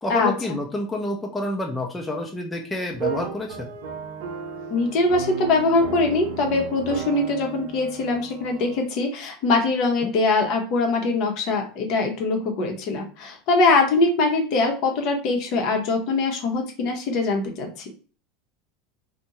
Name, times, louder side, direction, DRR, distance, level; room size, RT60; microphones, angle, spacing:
voice 1, 0.0-3.7 10.0-10.1, left 2 dB, 10° left, 0 dB, 0.5 m, -28 dB
sound 1, 2.9-8.8, right 6 dB, 65° right, 0.5 m, -34 dB
voice 2, 4.7-17.7, left 3 dB, 50° left, 2 dB, 0.7 m, -22 dB
2.5 x 2.2 x 2.9 m, 0.38 s
figure-of-eight pair, 80°, 0 cm